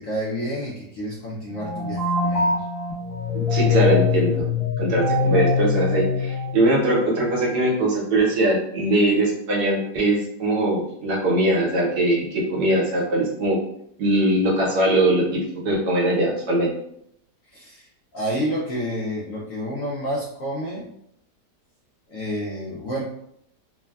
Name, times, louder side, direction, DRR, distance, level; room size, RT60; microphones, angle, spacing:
voice 1, 0.0-2.7 17.4-17.9 18.1-20.8 22.1-23.0, equal, 70° left, -4 dB, 0.8 m, -29 dB
sound 1, 1.5-7.0, left 4 dB, 45° left, 0.9 m, -23 dB
voice 2, 3.3-4.5 4.8-13.6 14.0-16.7, right 1 dB, 70° right, -3 dB, 1.2 m, -21 dB
3.2 x 2.1 x 2.2 m, 0.73 s
omnidirectional pair, 1.8 m